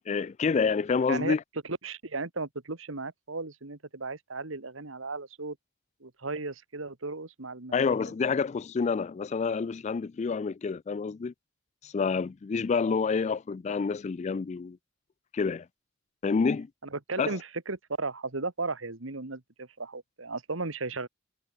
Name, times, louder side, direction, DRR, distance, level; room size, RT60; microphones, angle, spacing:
voice 1, 0.1-1.4 7.7-11.3 11.8-14.8 15.3-15.7 16.2-16.7 17.2-17.4, left 5 dB, 35° left, 0.3 m, -28 dB
voice 2, 1.7-5.6 6.0-7.8 16.9-21.1, right 3 dB, 80° right, 1.9 m, -35 dB
head